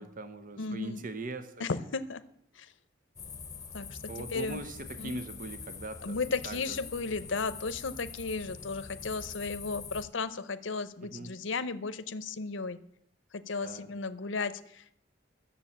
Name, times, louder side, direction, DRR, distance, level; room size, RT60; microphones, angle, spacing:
voice 1, 0.0-1.6 4.1-6.2 6.4-6.8 11.0-11.3 13.6-13.9, right 2 dB, 45° right, 9 dB, 0.9 m, -40 dB
voice 2, 0.6-1.0 1.6-2.2 2.6-2.7 3.7-4.0 4.3-4.6 5.0-5.2 6.0-12.8 13.5-15.0, left 4 dB, 80° left, 14 dB, 0.8 m, -34 dB
sound 1, 3.2-10.0, left 5 dB, 20° left, 1.0 m, -44 dB
11.5 x 7.0 x 8.6 m, 0.71 s
head